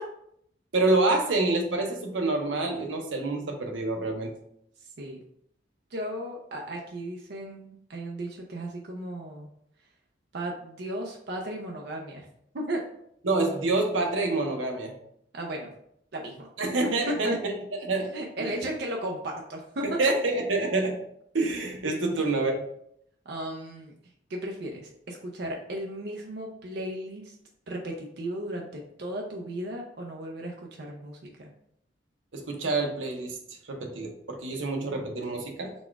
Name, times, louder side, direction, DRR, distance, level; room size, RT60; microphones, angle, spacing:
voice 1, 0.7-4.3 13.2-14.9 16.6-17.5 17.8-18.1 18.4-18.6 20.0-21.0 21.3-22.6 32.3-35.7, right 2 dB, 85° right, 2 dB, 0.8 m, -27 dB
voice 2, 5.9-9.5 10.3-12.3 12.5-12.8 15.3-15.7 16.1-16.5 16.8-17.3 17.9-19.8 22.2-22.3 23.3-23.9 24.3-27.3 27.7-31.5, right 1 dB, 60° right, 0 dB, 0.5 m, -35 dB
4.1 x 2.3 x 4.5 m, 0.71 s
head